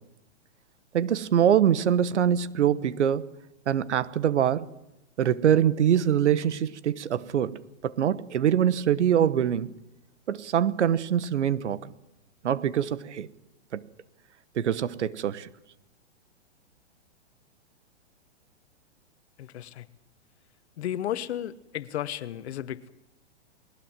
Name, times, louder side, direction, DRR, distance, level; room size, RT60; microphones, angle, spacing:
voice 1, 0.9-3.3 3.7-4.7 5.2-9.8 10.3-11.9 12.4-13.3 13.7-13.8 14.5-15.5, right 9 dB, 75° right, 1.3 m, -24 dB
voice 2, 19.4-19.9 20.8-22.9, left 11 dB, 65° left, 1.3 m, -33 dB
20.5 x 20.5 x 7.5 m
hypercardioid pair, 125°, 35 cm